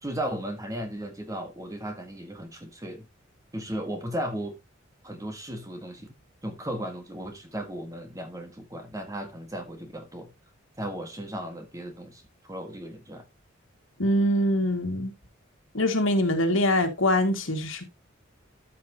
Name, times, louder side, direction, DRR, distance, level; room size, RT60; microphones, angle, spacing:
voice 1, 0.0-3.1 3.5-4.6 5.0-6.1 6.4-10.3 10.8-13.2, right 1 dB, 15° right, 1.5 m, -35 dB
voice 2, 14.0-15.1 15.7-17.9, left 1 dB, 75° left, 2.1 m, -24 dB
13.0 x 5.6 x 2.9 m
head